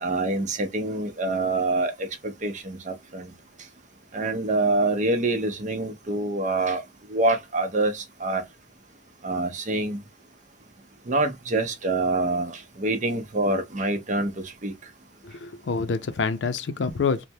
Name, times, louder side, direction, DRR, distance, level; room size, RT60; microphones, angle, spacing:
voice 1, 0.0-3.3 4.1-6.8 7.1-8.4 9.2-10.0 11.1-12.5 12.8-14.7, right 2 dB, 45° right, 0.6 m, -26 dB
voice 2, 15.2-17.3, left 5 dB, 80° left, 0.5 m, -27 dB
3.3 x 2.1 x 2.7 m
head